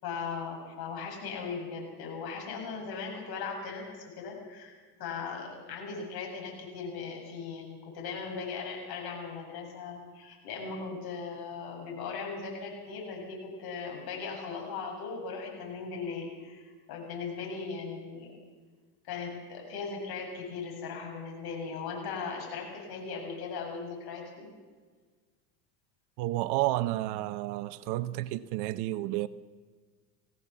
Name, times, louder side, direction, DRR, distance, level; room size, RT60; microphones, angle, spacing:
voice 1, 0.0-4.7 5.0-18.4 19.0-24.5, left 5 dB, 50° left, 7.9 m, -38 dB
voice 2, 26.2-29.3, right 16 dB, 55° right, 0.9 m, -31 dB
21.0 x 16.5 x 7.5 m
supercardioid pair, 105°, 49 cm